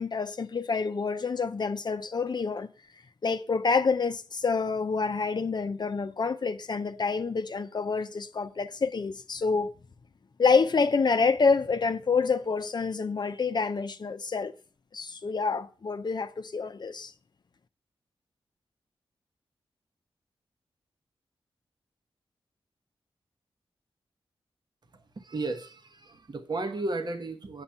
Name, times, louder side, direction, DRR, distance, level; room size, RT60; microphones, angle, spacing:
voice 1, 0.0-2.7 3.2-9.7 10.4-14.6 14.9-17.1, left 4 dB, 50° left, 0.6 m, -27 dB
voice 2, 24.9-27.6, right 2 dB, 45° right, 1.1 m, -34 dB
8.9 x 6.0 x 5.5 m
cardioid pair, 75°, 10 cm